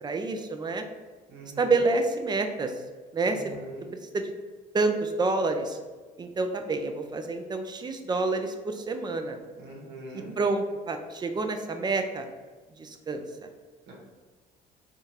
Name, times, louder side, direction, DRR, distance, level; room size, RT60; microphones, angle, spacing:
voice 1, 0.0-0.8 1.6-2.7 3.1-3.4 4.1-4.3 4.7-5.8 6.2-9.4 10.4-12.3 12.8-13.2, right 3 dB, 25° right, 6 dB, 0.4 m, -28 dB
voice 2, 1.3-1.7 3.3-3.8 9.6-10.3 13.9-14.0, right 2 dB, 85° right, -1 dB, 1.1 m, -43 dB
3.7 x 2.4 x 4.1 m, 1.4 s
cardioid pair, 110°, 17 cm